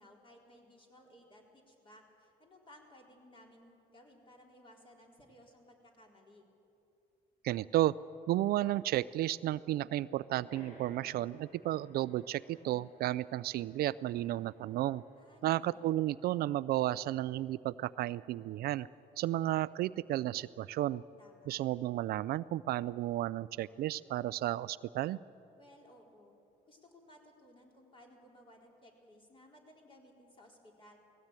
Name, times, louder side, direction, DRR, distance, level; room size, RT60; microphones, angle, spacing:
voice 1, 0.0-6.4 15.2-16.0 21.2-21.6 25.6-26.4 26.7-31.0, left 1 dB, 30° left, 0 dB, 4.3 m, -59 dB
voice 2, 7.4-7.9 8.3-15.0 15.4-18.9 19.2-21.0 21.5-25.2, right 14 dB, 65° right, 17 dB, 0.4 m, -33 dB
sound 1, 10.5-15.7, equal, 50° left, 4.9 m, -59 dB
19.5 x 16.0 x 9.1 m, 2.8 s
cardioid pair, 110°, 17 cm